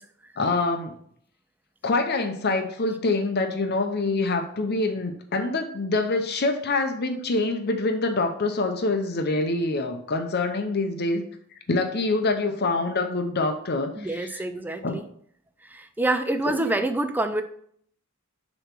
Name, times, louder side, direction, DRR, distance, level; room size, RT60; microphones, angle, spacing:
voice 1, 0.4-0.9 1.8-11.2 11.7-14.4 14.8-15.0 16.5-16.6, left 3 dB, 45° left, 6 dB, 0.7 m, -25 dB
voice 2, 14.0-15.0 15.6-17.4, right 2 dB, 10° right, 8 dB, 0.4 m, -26 dB
6.7 x 3.1 x 5.8 m, 0.64 s
head